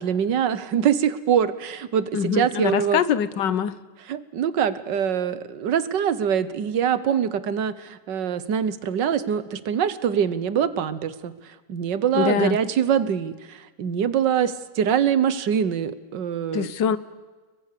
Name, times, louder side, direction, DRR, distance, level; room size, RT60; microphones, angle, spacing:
voice 1, 0.0-3.0 4.1-16.7, right 8 dB, 80° right, 15 dB, 1.8 m, -24 dB
voice 2, 2.1-3.8 12.1-12.6 16.5-17.0, left 8 dB, 85° left, 16 dB, 1.7 m, -23 dB
30.0 x 22.5 x 6.8 m, 1.3 s
omnidirectional pair, 1.9 m